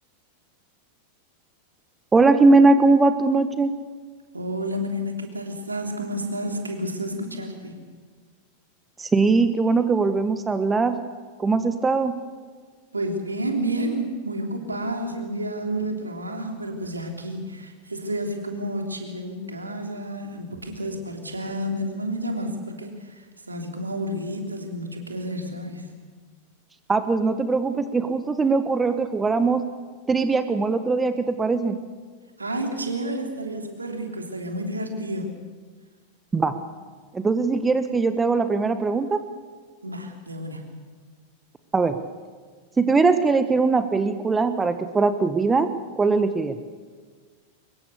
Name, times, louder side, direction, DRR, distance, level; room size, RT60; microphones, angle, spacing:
voice 1, 2.1-3.7 9.0-10.9 11.4-12.2 26.9-29.6 30.1-31.8 36.3-36.5 37.1-39.2 41.7-41.9 42.8-45.7 46.0-46.6, right 3 dB, 15° right, 10 dB, 1.3 m, -20 dB
voice 2, 4.3-7.7 12.9-25.9 32.4-35.3 39.8-40.8, right 1 dB, 80° right, 3 dB, 3.2 m, -30 dB
24.5 x 22.0 x 6.7 m, 1.5 s
figure-of-eight pair, 90°, 0 cm